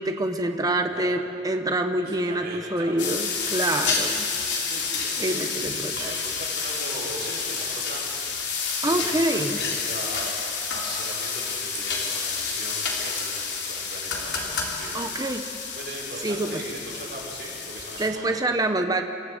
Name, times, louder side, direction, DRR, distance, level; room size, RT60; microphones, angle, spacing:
voice 1, 0.0-4.3 5.2-6.1 8.8-9.6 14.9-15.4 16.2-16.6 18.0-19.0, right 1 dB, 20° right, 6 dB, 0.8 m, -26 dB
voice 2, 0.8-1.2 2.0-2.9 3.9-8.1 8.4-8.6 8.8-15.5 15.7-18.6, right 2 dB, 60° right, -5 dB, 5.9 m, -39 dB
sound 1, 3.0-18.1, left 5 dB, 75° left, 3.4 m, -29 dB
27.5 x 14.5 x 8.2 m, 2.8 s
head